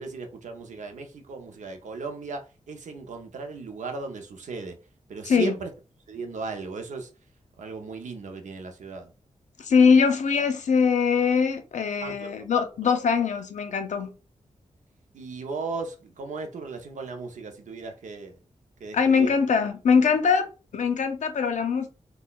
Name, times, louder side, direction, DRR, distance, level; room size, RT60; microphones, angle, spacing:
voice 1, 0.0-4.8 5.1-5.7 6.1-7.1 7.6-9.1 12.0-12.6 15.1-18.4 18.8-19.4, right 4 dB, 85° right, 0.6 m, -36 dB
voice 2, 9.6-14.2 18.9-20.5 20.7-21.9, left 6 dB, 80° left, 0.6 m, -22 dB
3.8 x 2.2 x 2.3 m
wide cardioid pair, 90°, 12 cm